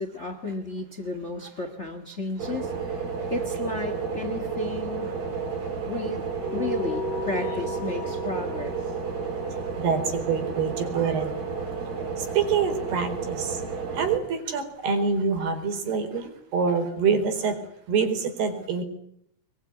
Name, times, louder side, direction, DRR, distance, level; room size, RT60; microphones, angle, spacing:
voice 1, 0.0-5.1 5.8-6.2 6.5-8.8, left 2 dB, 45° left, 8 dB, 0.9 m, -33 dB
sound 1, 2.4-14.2, right 5 dB, 60° right, 7.1 m, -32 dB
sound 2, 6.4-11.2, left 3 dB, 75° left, 9.0 m, -37 dB
voice 2, 9.5-11.6 12.0-13.6 13.9-17.6 17.9-18.8, right 5 dB, 85° right, 7 dB, 6.2 m, -26 dB
24.0 x 22.5 x 9.8 m, 0.73 s
omnidirectional pair, 4.5 m